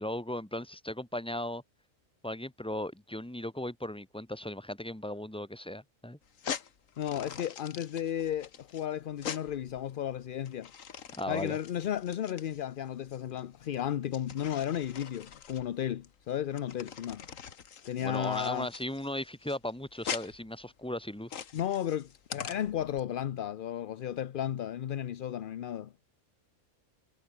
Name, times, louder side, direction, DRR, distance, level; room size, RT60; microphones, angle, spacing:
voice 1, 0.0-1.6 2.2-6.2 11.2-11.6 18.0-21.3, left 1 dB, 5° left, 1.5 m, -37 dB
sound 1, 6.2-23.0, left 7 dB, 85° left, 1.7 m, -44 dB
voice 2, 7.0-10.7 11.3-17.2 17.8-18.7 21.5-25.9, left 10 dB, 55° left, 0.6 m, -34 dB
omnidirectional pair, 1.3 m